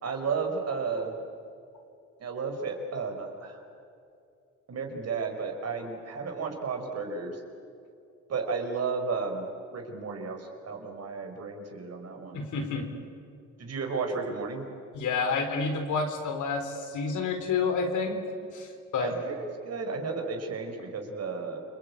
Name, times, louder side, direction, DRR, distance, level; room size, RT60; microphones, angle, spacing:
voice 1, 0.0-1.1 2.2-3.6 4.7-7.4 8.3-12.4 13.6-14.6 19.0-21.6, right 4 dB, 55° right, 4 dB, 5.1 m, -33 dB
voice 2, 12.3-12.9 14.9-18.2 18.5-19.1, left 4 dB, 80° left, 5 dB, 4.1 m, -29 dB
29.0 x 22.5 x 8.6 m, 2.5 s
cardioid pair, 90°, 30 cm